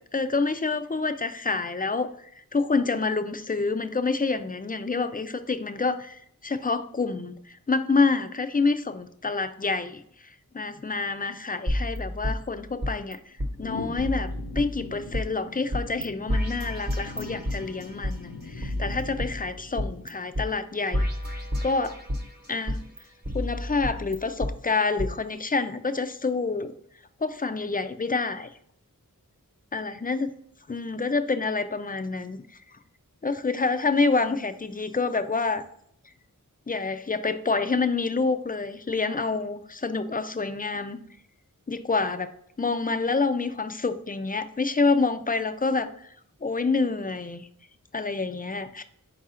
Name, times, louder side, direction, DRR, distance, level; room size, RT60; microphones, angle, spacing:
voice 1, 0.1-13.3 13.6-21.4 21.6-22.0 22.5-22.9 23.3-26.7 27.2-28.5 29.7-30.3 30.7-32.4 33.2-35.6 36.7-41.0 41.7-46.1 46.4-47.5 47.9-48.8, left 4 dB, 25° left, 10 dB, 0.4 m, -27 dB
sound 1, 11.7-13.1 13.4-13.5 14.0-15.2 15.7-16.0 16.3-18.1 18.6-20.1 20.3-20.5 20.9-22.3 22.7-24.5 25.0-25.1, equal, 30° right, 0.9 m, -30 dB
sound 2, 13.6-20.3, left 4 dB, 85° left, 0.6 m, -41 dB
4.7 x 2.4 x 4.2 m, 0.67 s
wide cardioid pair, 40°, 33 cm